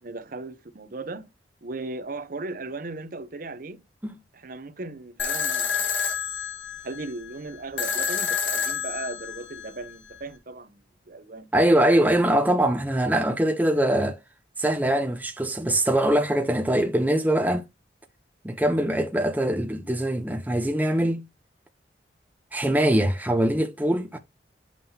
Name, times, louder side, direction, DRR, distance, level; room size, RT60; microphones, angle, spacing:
voice 1, 0.0-1.3 1.6-3.8 4.3-5.9 6.8-10.8 11.1-11.5, right 2 dB, 50° right, 0.7 m, -37 dB
sound 1, 5.2-10.2, left 7 dB, 85° left, 1.6 m, -29 dB
voice 2, 11.5-14.2 14.6-17.6 18.4-21.2 22.5-24.2, right 1 dB, 10° right, 0.7 m, -22 dB
7.4 x 5.6 x 2.7 m
head